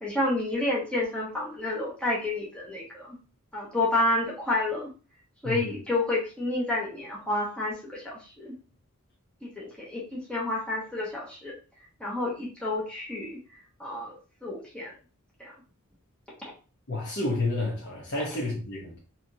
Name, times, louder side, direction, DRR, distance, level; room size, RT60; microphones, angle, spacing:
voice 1, 0.0-3.2 3.5-4.9 5.4-8.5 9.4-11.5 12.0-13.4 13.8-14.9 15.4-15.5, left 2 dB, 5° left, 0.9 m, -30 dB
voice 2, 16.9-19.0, left 2 dB, 55° left, 0.8 m, -30 dB
3.2 x 2.9 x 2.7 m
head